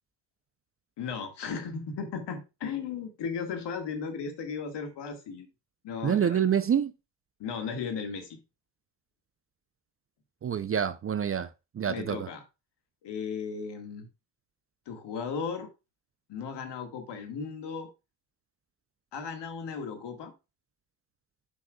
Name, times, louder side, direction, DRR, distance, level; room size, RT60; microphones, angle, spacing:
voice 1, 1.0-5.5 5.8-6.4 7.4-8.4 11.9-12.4 13.0-14.1 14.9-15.7 16.3-17.9 19.1-20.3, left 5 dB, 60° left, 1.9 m, -36 dB
voice 2, 6.0-6.9 10.4-11.5 11.7-12.3, right 8 dB, 30° right, 0.6 m, -27 dB
12.0 x 6.0 x 2.4 m
hypercardioid pair, 50°, 47 cm